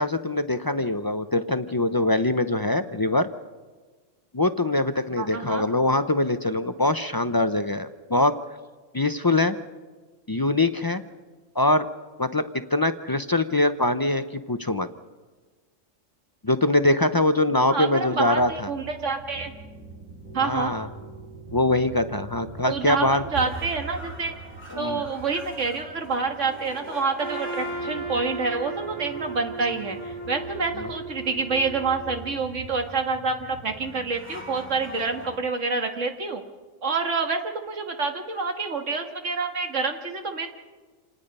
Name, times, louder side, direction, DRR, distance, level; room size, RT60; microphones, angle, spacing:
voice 1, 0.0-3.3 4.3-8.3 8.9-9.6 10.3-11.0 11.6-11.9 12.2-14.9 16.4-18.7 20.4-20.9 21.5-23.2 24.7-25.0 30.8-30.9, left 2 dB, 35° left, 9 dB, 0.3 m, -23 dB
voice 2, 5.2-5.6 17.7-19.5 20.3-20.7 22.7-24.3 24.8-36.4 36.8-40.5, right 4 dB, 70° right, 5 dB, 2.0 m, -27 dB
sound 1, 18.0-35.4, right 3 dB, 35° right, 2.4 m, -42 dB
Trumpet, 27.2-32.2, right 2 dB, 90° right, 8.5 m, -35 dB
27.0 x 19.0 x 5.4 m, 1.3 s
omnidirectional pair, 1.3 m